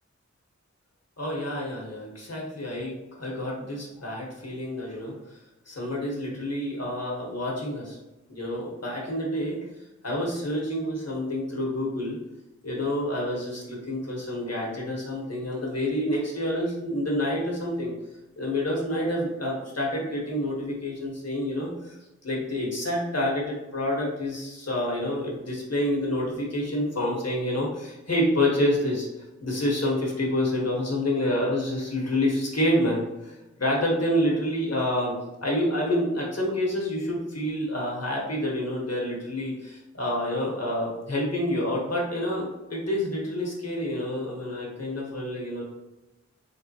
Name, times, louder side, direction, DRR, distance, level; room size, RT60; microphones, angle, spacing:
voice 1, 1.2-5.2 5.7-8.0 8.3-9.6 10.0-12.2 12.6-17.9 18.4-22.0 22.2-29.1 29.4-35.1 35.4-45.6, left 1 dB, 60° left, -3 dB, 1.4 m, -28 dB
3.8 x 3.6 x 2.9 m, 1.0 s
wide cardioid pair, 50°, 29 cm